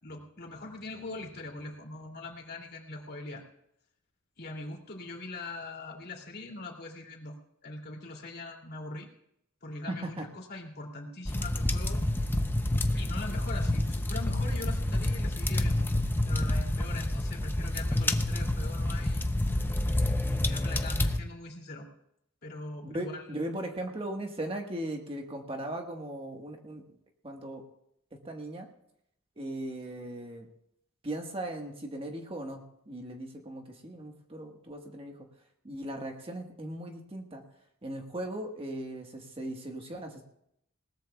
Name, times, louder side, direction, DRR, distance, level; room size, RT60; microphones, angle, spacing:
voice 1, 0.0-3.4 4.4-7.4 7.6-9.1 9.6-12.0 12.9-15.9 16.3-19.3 19.5-19.7 20.2-21.9 22.4-23.4, left 2 dB, 50° left, 0 dB, 2.7 m, -42 dB
voice 2, 9.9-10.2 22.8-26.9 27.2-27.6 28.2-28.7 29.4-30.5 31.0-35.2 35.6-37.4 37.8-40.2, right 1 dB, 25° right, 2 dB, 1.4 m, -38 dB
sound 1, 11.3-21.2, left 1 dB, 10° left, 0.6 m, -28 dB
20.5 x 18.5 x 2.3 m, 0.76 s
head